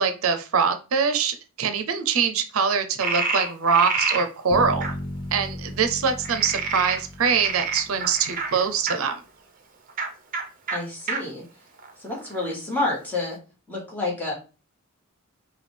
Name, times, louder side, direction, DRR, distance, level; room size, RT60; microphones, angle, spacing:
voice 1, 0.0-4.9 5.3-9.2, right 6 dB, 85° right, 8 dB, 0.6 m, -23 dB
Frog, 3.0-4.2 4.8-4.9 6.2-9.0 9.9-10.1 10.3-10.4 10.7-10.8 11.1-11.2 11.8-12.5, right 4 dB, 40° right, 0.7 m, -28 dB
Bass guitar, 4.5-8.5, left 1 dB, 60° left, 1.1 m, -36 dB
voice 2, 10.7-11.4 12.0-13.4 13.7-14.3, left 2 dB, 10° left, -4 dB, 1.4 m, -29 dB
5.0 x 2.3 x 3.3 m, 0.33 s
head